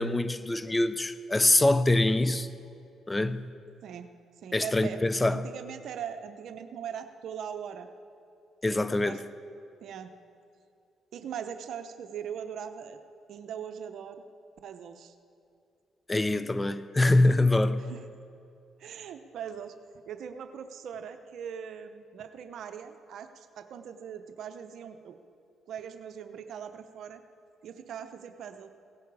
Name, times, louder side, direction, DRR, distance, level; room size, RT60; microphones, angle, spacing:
voice 1, 0.0-2.5 3.1-3.5 4.5-5.4 8.6-9.2 16.1-17.8, left 2 dB, 15° left, 0.6 m, -24 dB
voice 2, 4.4-5.0 5.3-7.9 9.0-9.2 9.8-10.1 11.1-13.0 13.3-14.2 14.6-15.1 17.8-18.0 18.8-19.7 20.1-25.2 25.7-27.2 27.6-28.7, right 8 dB, 70° right, 0.7 m, -40 dB
17.0 x 13.5 x 4.8 m
cardioid pair, 90°, 0 cm